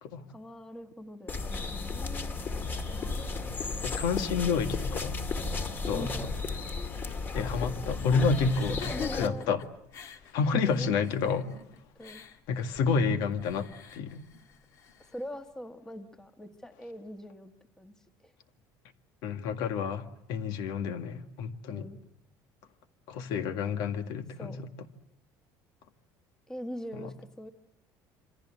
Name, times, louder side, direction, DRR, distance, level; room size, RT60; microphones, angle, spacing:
voice 1, 0.3-2.7 5.9-6.3 8.7-9.5 10.6-10.9 12.0-12.2 15.0-17.9 18.2-18.3 21.7-22.0 24.4-24.6 26.5-27.5, equal, 10° left, 7 dB, 1.5 m, -42 dB
sound 1, 1.3-9.3, left 3 dB, 25° left, 2.2 m, -34 dB
voice 2, 3.8-5.2 5.9-6.3 7.3-8.8 9.1-9.6 10.3-11.5 12.5-14.2 19.2-21.9 23.1-24.7 27.0-27.1, left 5 dB, 70° left, 8 dB, 2.0 m, -29 dB
sound 2, 8.4-15.2, left 8 dB, 45° left, 2.1 m, -45 dB
27.0 x 25.5 x 7.8 m, 0.74 s
cardioid pair, 165°, 7 cm